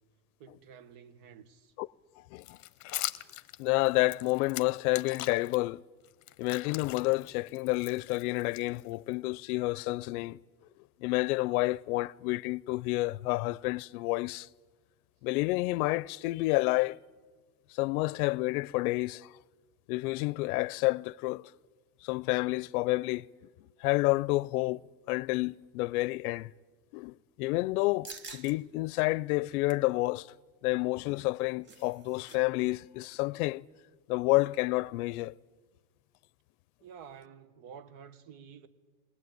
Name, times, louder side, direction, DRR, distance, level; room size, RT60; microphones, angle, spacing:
voice 1, 0.4-1.7 36.8-38.7, right 7 dB, 50° right, 1.6 m, -50 dB
voice 2, 2.2-2.6 3.6-5.8 6.4-10.4 11.0-14.5 15.2-17.0 17.7-19.4 19.9-21.5 22.0-23.3 23.8-24.8 25.1-26.5 26.9-30.3 30.6-33.6 34.1-35.3, left 21 dB, 80° left, 0.6 m, -29 dB
sound 1, 2.4-5.6 6.0-9.1, left 18 dB, 40° left, 1.0 m, -41 dB
sound 2, 28.0-28.5 29.0-29.1 29.5-29.9 31.2-32.4 32.6-32.8 33.1-33.4, right 4 dB, 25° right, 1.4 m, -48 dB
21.0 x 19.5 x 9.3 m
cardioid pair, 155°, 43 cm